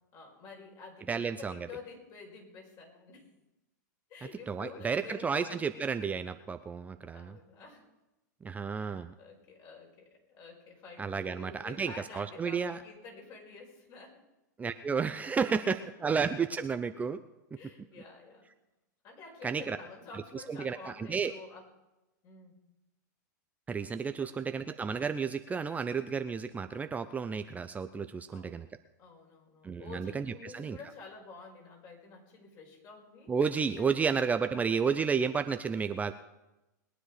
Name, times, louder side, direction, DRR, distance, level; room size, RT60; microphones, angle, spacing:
voice 1, 0.1-3.3 4.1-5.9 7.1-7.8 8.7-14.2 17.6-18.5 19.0-21.7 22.2-22.6 24.2-24.6 28.2-28.6 29.0-33.3 33.8-34.7, left 4 dB, 40° left, 0 dB, 5.4 m, -50 dB
voice 2, 1.1-1.7 4.5-7.4 8.4-9.1 11.0-12.8 14.6-17.2 19.4-19.8 20.3-21.3 23.7-28.7 29.6-30.8 33.3-36.1, right 5 dB, 15° right, 10 dB, 0.5 m, -32 dB
21.0 x 9.9 x 4.9 m, 1.0 s
hypercardioid pair, 115°, 10 cm